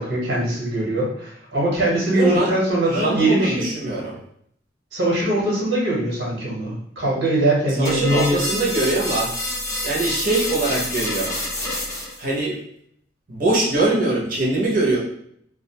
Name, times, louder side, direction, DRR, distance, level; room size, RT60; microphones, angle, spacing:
voice 1, 0.0-3.7 4.9-8.4, right 1 dB, 85° right, -5 dB, 1.0 m, -21 dB
voice 2, 2.1-2.5 2.9-4.2 7.8-9.3 9.8-11.4 12.2-12.6 13.3-15.0, right 2 dB, 50° right, -4 dB, 0.7 m, -22 dB
sound 1, 7.8-12.2, left 1 dB, 15° left, 0.5 m, -27 dB
2.4 x 2.1 x 2.8 m, 0.68 s
head